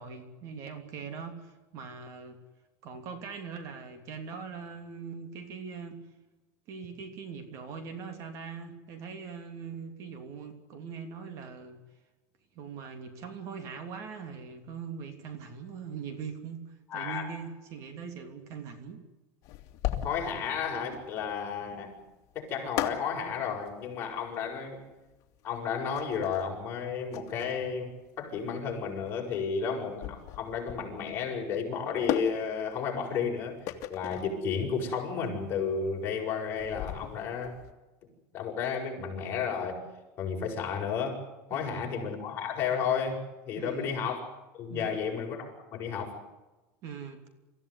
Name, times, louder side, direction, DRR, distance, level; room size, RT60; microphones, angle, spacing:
voice 1, 0.0-2.4 2.8-6.0 6.7-11.8 12.5-19.0 41.5-41.9 43.5-43.9 44.7-44.9 46.8-47.3, right 6 dB, 45° right, 7 dB, 3.0 m, -41 dB
voice 2, 16.9-17.3 20.0-22.0 22.4-24.8 25.4-33.6 33.9-37.6 38.3-39.8 40.2-41.2 41.5-44.2 44.6-46.2, left 6 dB, 30° left, -1 dB, 7.1 m, -32 dB
sound 1, 19.4-37.7, left 12 dB, 50° left, 2.4 m, -38 dB
25.5 x 15.5 x 9.9 m, 1.1 s
cardioid pair, 160°, 7 cm